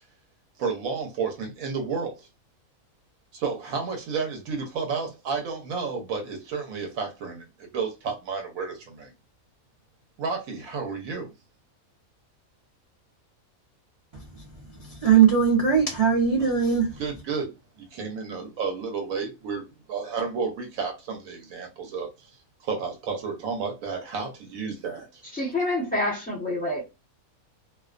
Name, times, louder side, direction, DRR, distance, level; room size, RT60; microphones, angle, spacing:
voice 1, 0.6-2.3 3.3-9.1 10.2-11.3 16.4-16.5 17.0-22.1 22.6-25.2, right 5 dB, 75° right, 1.0 m, -31 dB
voice 2, 14.4-16.9, right 7 dB, 40° right, 0.5 m, -20 dB
voice 3, 25.3-26.8, left 1 dB, 10° left, 0.6 m, -27 dB
2.5 x 2.1 x 2.4 m
omnidirectional pair, 1.5 m